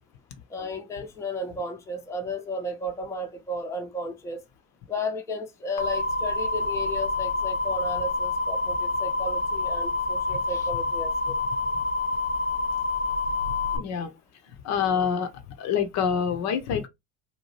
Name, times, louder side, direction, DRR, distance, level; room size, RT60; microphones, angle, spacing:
voice 1, 0.5-4.4 4.9-11.4, left 1 dB, 10° left, 0.5 m, -33 dB
sound 1, 5.8-13.8, left 3 dB, 80° left, 0.8 m, -27 dB
voice 2, 13.7-14.1 14.6-15.3 15.6-16.9, left 7 dB, 45° left, 0.6 m, -26 dB
2.7 x 2.2 x 3.0 m
hypercardioid pair, 80°, 37 cm